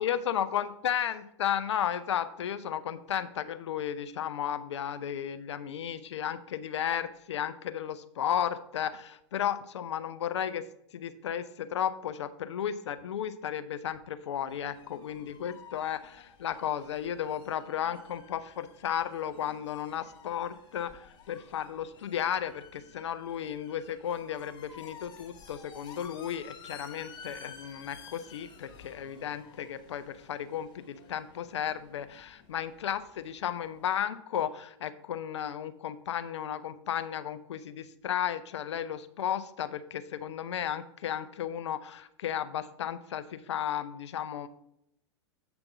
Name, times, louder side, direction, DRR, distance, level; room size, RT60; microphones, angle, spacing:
voice 1, 0.0-44.5, left 9 dB, 75° left, 11 dB, 0.6 m, -34 dB
sound 1, 14.5-34.0, left 6 dB, 30° left, 1.6 m, -53 dB
8.0 x 3.5 x 6.0 m, 0.75 s
hypercardioid pair, 110°, 15 cm